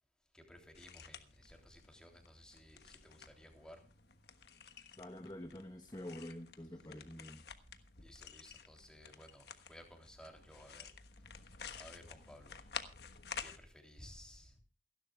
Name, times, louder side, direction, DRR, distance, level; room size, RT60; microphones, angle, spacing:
voice 1, 0.3-3.8 8.0-10.9 11.4-12.6 13.4-14.6, equal, 5° left, 3 dB, 3.2 m, -57 dB
sound 1, 0.7-13.6, left 6 dB, 55° left, 1.3 m, -51 dB
voice 2, 5.0-7.4, left 1 dB, 20° left, 5 dB, 1.1 m, -47 dB
28.5 x 11.5 x 2.4 m, 0.32 s
head